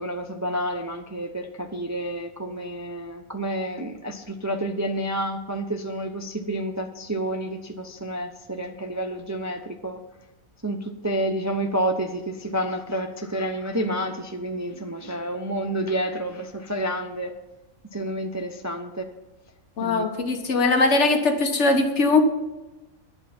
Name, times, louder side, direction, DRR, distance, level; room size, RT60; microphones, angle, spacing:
voice 1, 0.0-10.0 10.6-17.3 17.9-19.0 19.8-20.0, right 1 dB, 15° right, 5 dB, 0.6 m, -29 dB
voice 2, 19.8-22.2, left 3 dB, 55° left, 6 dB, 1.7 m, -20 dB
21.5 x 8.6 x 4.4 m, 1.0 s
omnidirectional pair, 1.5 m